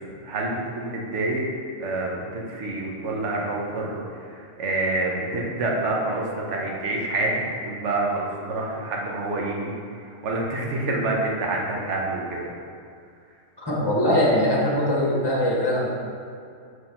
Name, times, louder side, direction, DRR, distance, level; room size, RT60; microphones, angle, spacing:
voice 1, 0.2-1.5 1.8-4.0 4.6-7.3 7.6-9.7 10.2-12.5, right 2 dB, 60° right, -2 dB, 1.2 m, -27 dB
voice 2, 13.6-15.9, equal, 20° left, -4 dB, 1.3 m, -21 dB
6.0 x 5.5 x 4.3 m, 2.3 s
omnidirectional pair, 1.4 m